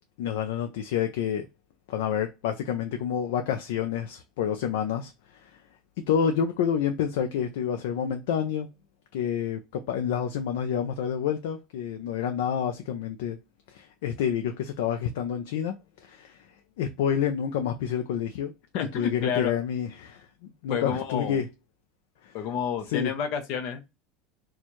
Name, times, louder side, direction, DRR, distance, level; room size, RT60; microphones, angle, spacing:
voice 1, 0.2-1.5 1.9-5.6 6.1-8.7 9.1-13.4 13.7-15.7 16.0-16.4 16.8-18.5 18.9-21.5 22.2-22.3 22.9-23.1, left 8 dB, 85° left, 0.5 m, -28 dB
voice 2, 18.7-19.6 20.7-21.4 22.3-23.9, left 7 dB, 50° left, 0.7 m, -30 dB
4.3 x 2.3 x 3.0 m
cardioid pair, 175°, 0 cm